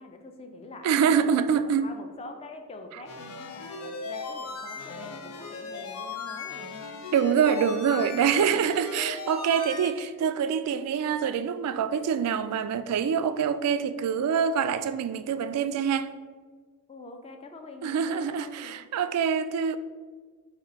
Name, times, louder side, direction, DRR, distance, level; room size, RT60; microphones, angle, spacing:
voice 1, 0.0-6.7 16.9-18.8, left 2 dB, 25° left, 0.4 m, -45 dB
voice 2, 0.8-1.9 7.1-16.1 17.8-19.8, right 7 dB, 90° right, 0.3 m, -25 dB
sound 1, 3.1-9.9, left 4 dB, 90° left, 0.6 m, -37 dB
4.2 x 3.1 x 3.9 m
head